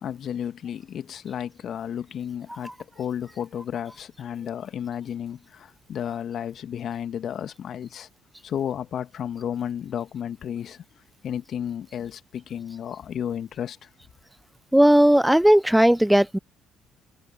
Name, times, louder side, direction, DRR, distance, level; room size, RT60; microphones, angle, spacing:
voice 1, 0.0-8.1 8.4-10.8 11.2-13.9, left 9 dB, 55° left, 2.0 m, -32 dB
voice 2, 14.7-16.4, right 1 dB, 5° right, 0.3 m, -17 dB
hypercardioid pair, 50°, 0 cm